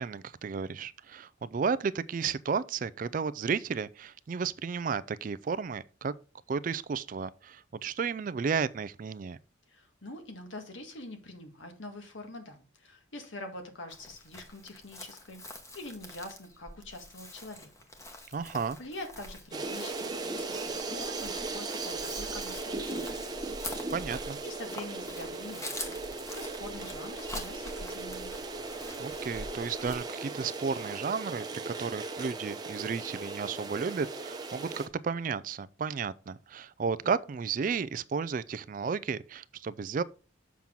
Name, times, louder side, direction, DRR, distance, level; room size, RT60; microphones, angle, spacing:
voice 1, 0.0-6.1 6.5-9.4 18.3-18.8 23.9-24.4 29.0-40.0, right 5 dB, 40° right, 0.3 m, -33 dB
voice 2, 9.7-15.4 15.7-17.7 18.8-20.6 20.9-23.4 24.4-28.3, left 2 dB, 70° left, 1.7 m, -45 dB
Chirp tweet, 13.9-30.0, left 1 dB, 15° left, 1.1 m, -45 dB
sound 1, 19.5-34.9, right 3 dB, 20° right, 0.8 m, -38 dB
7.2 x 5.9 x 3.8 m
head